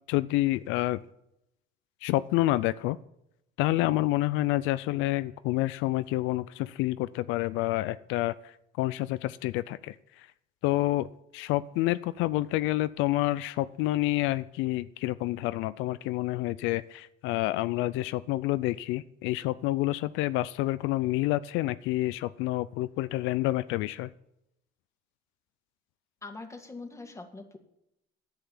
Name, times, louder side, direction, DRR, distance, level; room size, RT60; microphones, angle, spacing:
voice 1, 0.1-1.0 2.0-3.0 3.6-8.3 8.8-9.9 10.6-11.1 11.3-24.1, left 17 dB, 85° left, 15 dB, 0.4 m, -28 dB
voice 2, 26.2-27.6, left 3 dB, 15° left, 4 dB, 1.9 m, -43 dB
10.0 x 8.1 x 7.2 m, 0.82 s
cardioid pair, 95°, 20 cm